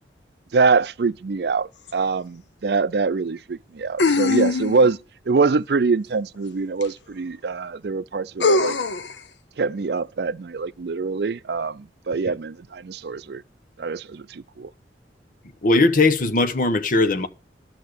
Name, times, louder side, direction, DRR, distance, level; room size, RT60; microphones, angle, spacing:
voice 1, 0.5-5.0 5.3-8.8 9.6-13.4 13.8-14.7, right 4 dB, 65° right, 0.5 m, -24 dB
sound 1, 1.9-2.0 4.0-4.9 6.8-6.9 8.4-9.1, left 3 dB, 85° left, 0.7 m, -21 dB
voice 2, 15.6-17.3, left 2 dB, 50° left, 1.0 m, -19 dB
12.5 x 5.9 x 6.5 m
head